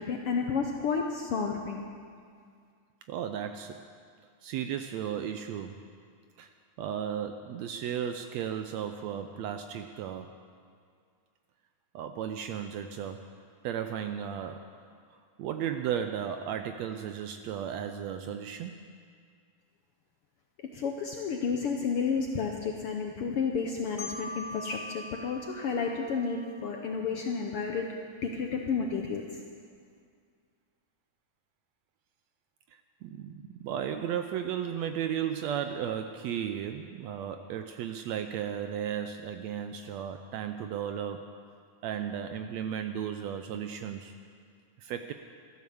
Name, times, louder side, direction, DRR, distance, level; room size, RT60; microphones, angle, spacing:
voice 1, 0.0-1.8 20.7-27.9 28.2-29.2, left 5 dB, 70° left, 2 dB, 1.4 m, -31 dB
voice 2, 3.1-3.8 4.4-5.8 6.4-6.5 6.8-10.4 11.9-13.3 13.6-14.7 15.4-18.8 32.7-41.3 41.8-44.1 44.8-45.1, right 9 dB, 75° right, 7 dB, 1.6 m, -35 dB
Marimba xylophone, 24.0-26.8, left 2 dB, 45° left, 0.5 m, -43 dB
14.5 x 12.5 x 7.0 m, 2.2 s
omnidirectional pair, 3.5 m